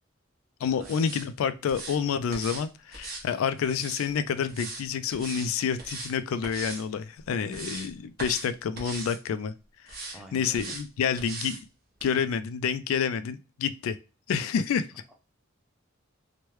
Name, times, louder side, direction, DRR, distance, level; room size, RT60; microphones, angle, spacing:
voice 1, 0.6-9.5 9.8-11.7 12.0-14.0 14.3-14.9, left 7 dB, 85° left, 12 dB, 0.3 m, -29 dB
sound 1, 0.8-1.3 1.7-2.0 2.3-2.6 2.9-4.1 4.5-4.8 5.1-5.5 5.8-6.1 6.4-6.8 7.2-7.9 8.2-8.5 8.8-9.2 9.9-10.2 10.5-10.8 11.2-11.6 12.0-12.1, right 3 dB, 50° right, 0.9 m, -39 dB
voice 2, 10.1-10.7 15.1-15.2, right 1 dB, 5° right, 1 dB, 0.5 m, -48 dB
3.1 x 2.2 x 3.0 m, 0.32 s
head